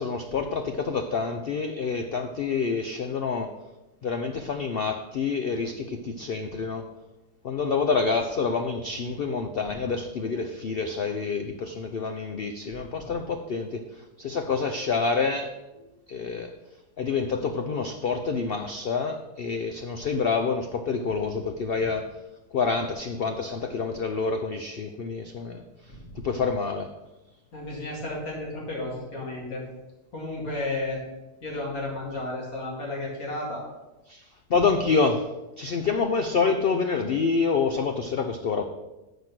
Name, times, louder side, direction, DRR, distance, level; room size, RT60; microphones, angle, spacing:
voice 1, 0.0-3.5 4.0-6.8 7.4-13.8 14.2-15.5 16.1-16.5 17.0-22.0 22.5-25.6 26.2-26.9 34.1-34.2 34.5-35.3 35.6-38.7, left 4 dB, 80° left, 6 dB, 0.5 m, -27 dB
voice 2, 27.5-29.6 30.1-31.0 31.4-33.6, left 2 dB, 60° left, -3 dB, 2.9 m, -33 dB
7.8 x 5.2 x 5.9 m, 1.0 s
omnidirectional pair, 1.7 m